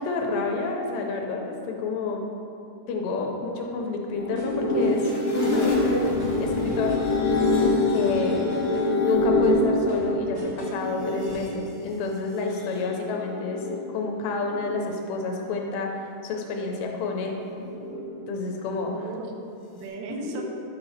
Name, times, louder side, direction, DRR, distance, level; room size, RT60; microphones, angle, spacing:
voice 1, 0.0-2.3 2.9-7.0 7.9-8.4 9.0-13.6 13.9-17.4 18.3-18.9 20.1-20.4, left 3 dB, 90° left, 1 dB, 2.9 m, -29 dB
sound 1, 4.1-11.5 12.4-13.9 14.3-14.9 17.4-18.2, left 2 dB, 65° left, 2.0 m, -25 dB
sound 2, 4.4-5.3 5.7-7.2 7.6-9.1 9.4-10.9 11.3-11.6, right 1 dB, 65° right, 2.9 m, -44 dB
voice 2, 18.8-20.4, right 4 dB, 80° right, 2 dB, 2.8 m, -37 dB
10.5 x 6.8 x 2.9 m, 2.7 s
omnidirectional pair, 5.0 m